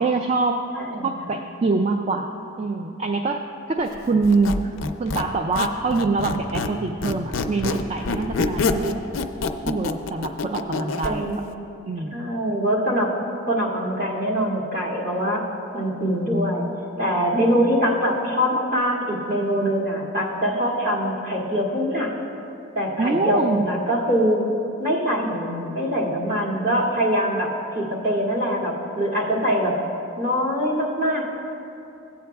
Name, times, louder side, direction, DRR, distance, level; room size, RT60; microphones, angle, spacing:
voice 1, 0.0-0.6 1.0-2.3 2.6-3.4 3.7-4.7 5.0-9.0 9.7-11.4 11.9-12.4 23.0-23.7, right 3 dB, 30° right, 4 dB, 0.3 m, -24 dB
voice 2, 0.7-1.1 11.0-11.4 12.1-13.1 13.5-15.4 15.7-16.7 17.0-22.1 22.7-24.5 24.8-29.7 30.2-31.3, equal, 50° right, -6 dB, 2.2 m, -23 dB
Squeak, 4.2-6.8 7.0-11.1, left 4 dB, 90° left, 0.5 m, -26 dB
16.0 x 8.6 x 2.3 m, 2.8 s
head